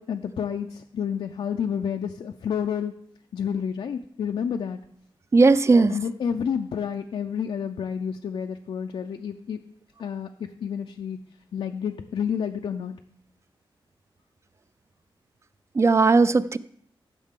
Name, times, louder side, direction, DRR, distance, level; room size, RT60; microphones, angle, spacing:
voice 1, 0.0-2.9 3.3-4.8 5.9-9.6 10.0-11.2 11.5-12.9, left 7 dB, 80° left, 5 dB, 0.5 m, -29 dB
voice 2, 5.3-5.9 15.8-16.6, right 3 dB, 30° right, 15 dB, 0.4 m, -17 dB
14.0 x 6.5 x 3.7 m, 0.66 s
wide cardioid pair, 150°, 9 cm